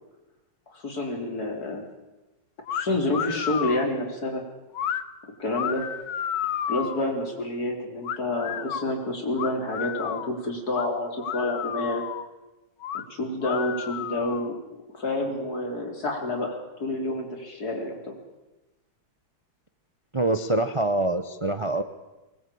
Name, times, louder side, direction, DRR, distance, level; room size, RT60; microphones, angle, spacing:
voice 1, 0.7-1.9 2.7-4.4 5.4-5.8 6.7-12.0 13.1-14.5 14.9-18.2, left 2 dB, 45° left, 2 dB, 4.3 m, -28 dB
sound 1, 2.7-2.9 3.1-3.9 4.7-5.0 5.5-7.1 8.0-8.9 9.4-10.3 10.7-10.9 11.2-12.3 12.8-13.0 13.4-14.5, left 9 dB, 60° left, 1.5 m, -31 dB
voice 2, 20.1-21.8, right 2 dB, 50° right, 9 dB, 0.3 m, -25 dB
23.0 x 21.0 x 8.7 m, 1.1 s
omnidirectional pair, 2.3 m